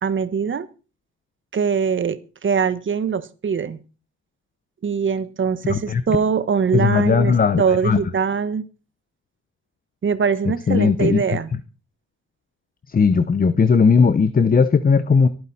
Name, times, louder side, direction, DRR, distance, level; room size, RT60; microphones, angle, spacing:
voice 1, 0.0-0.7 1.5-3.8 4.8-8.6 10.0-11.5, right 6 dB, 40° right, 14 dB, 1.3 m, -22 dB
voice 2, 5.7-6.0 6.7-8.0 10.7-11.2 12.9-15.3, left 5 dB, 30° left, 14 dB, 0.9 m, -17 dB
25.5 x 9.4 x 4.2 m, 0.35 s
cardioid pair, 90°, 30 cm